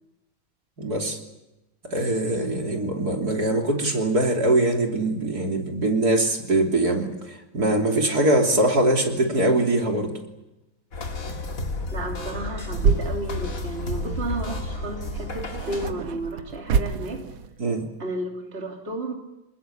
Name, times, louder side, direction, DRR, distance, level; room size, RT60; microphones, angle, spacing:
voice 1, 0.8-1.2 1.8-10.2 17.6-17.9, right 1 dB, 50° right, 2 dB, 3.7 m, -22 dB
sound 1, 10.9-15.9, left 3 dB, 40° left, 2.4 m, -32 dB
voice 2, 11.9-17.2 18.0-19.1, right 2 dB, 30° right, 1 dB, 3.1 m, -32 dB
sound 2, 12.7-17.6, right 7 dB, 75° right, 2.0 m, -28 dB
28.0 x 20.5 x 8.8 m, 0.97 s
omnidirectional pair, 2.2 m